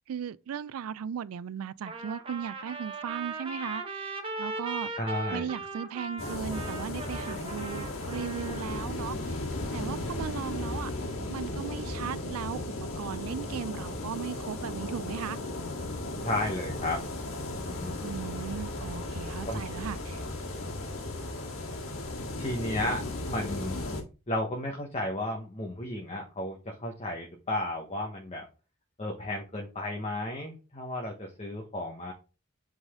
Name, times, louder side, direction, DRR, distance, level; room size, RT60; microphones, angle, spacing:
voice 1, 0.1-4.1 4.4-4.9 5.3-9.4 9.7-10.9 11.3-15.4 18.0-20.2, right 8 dB, 85° right, 0.3 m, -37 dB
Trumpet, 1.9-8.9, right 3 dB, 25° right, 1.0 m, -38 dB
voice 2, 5.0-5.6 16.2-17.0 17.6-17.9 19.5-19.6 22.4-23.8 24.3-28.4 29.0-32.1, left 1 dB, 30° left, 1.0 m, -33 dB
sound 1, 6.2-24.0, left 2 dB, 70° left, 1.8 m, -35 dB
8.1 x 4.0 x 3.5 m
head